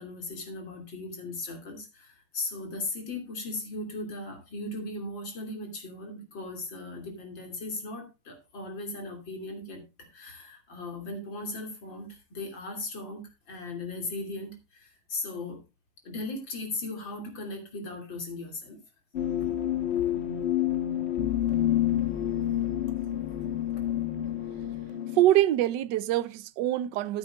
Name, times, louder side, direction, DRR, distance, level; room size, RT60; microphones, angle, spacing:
voice 1, 0.0-15.6 16.1-18.8, left 2 dB, 60° left, 3.5 m, -37 dB
sound 1, 19.1-25.2, left 12 dB, 35° left, 1.3 m, -28 dB
voice 2, 25.2-27.2, right 14 dB, 70° right, 1.2 m, -24 dB
13.5 x 9.8 x 2.4 m
omnidirectional pair, 2.3 m